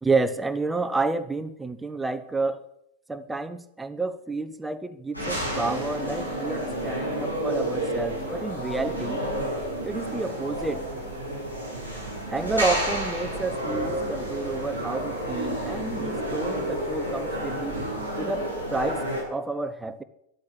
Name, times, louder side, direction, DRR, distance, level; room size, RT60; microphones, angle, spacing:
voice 1, 0.0-2.6 3.1-9.2 9.8-10.8 12.3-17.8 18.2-20.0, right 3 dB, 10° right, 11 dB, 1.0 m, -30 dB
sound 1, 5.1-19.2, right 1 dB, 85° left, 6.9 m, -30 dB
13.0 x 12.0 x 8.3 m, 0.79 s
figure-of-eight pair, 90°, 0 cm